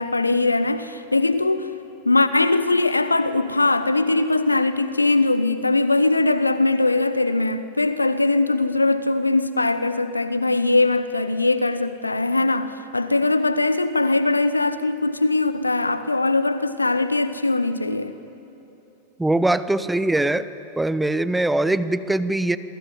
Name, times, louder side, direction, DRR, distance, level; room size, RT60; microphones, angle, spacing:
voice 1, 0.0-1.7 2.0-18.1, left 2 dB, 80° left, 0.9 m, -21 dB
voice 2, 19.2-20.5 20.8-22.6, right 2 dB, 5° right, 1.0 m, -21 dB
27.5 x 23.0 x 9.4 m
figure-of-eight pair, 90°, 0 cm